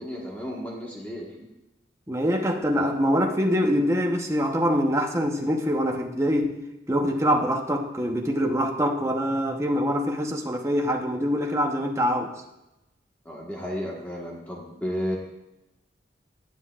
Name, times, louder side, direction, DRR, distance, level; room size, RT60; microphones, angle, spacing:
voice 1, 0.0-1.5 13.2-15.2, equal, 10° left, -3 dB, 1.4 m, -33 dB
voice 2, 2.1-6.6 6.9-12.3, equal, 15° right, 2 dB, 0.9 m, -24 dB
20.5 x 7.5 x 2.4 m, 0.94 s
head